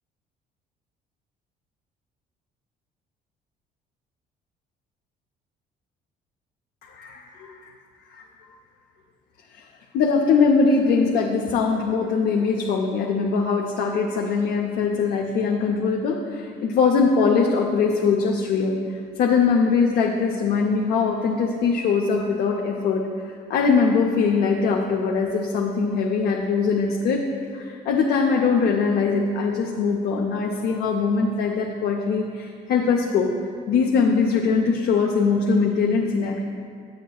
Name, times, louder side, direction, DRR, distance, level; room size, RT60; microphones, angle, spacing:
voice 1, 6.8-7.6 8.1-8.3 9.5-9.6 9.9-18.8 19.2-23.1 23.5-27.3 27.5-33.3 33.7-36.4, left 5 dB, 70° left, 0 dB, 0.6 m, -21 dB
8.9 x 7.9 x 2.3 m, 2.3 s
cardioid pair, 110°, 17 cm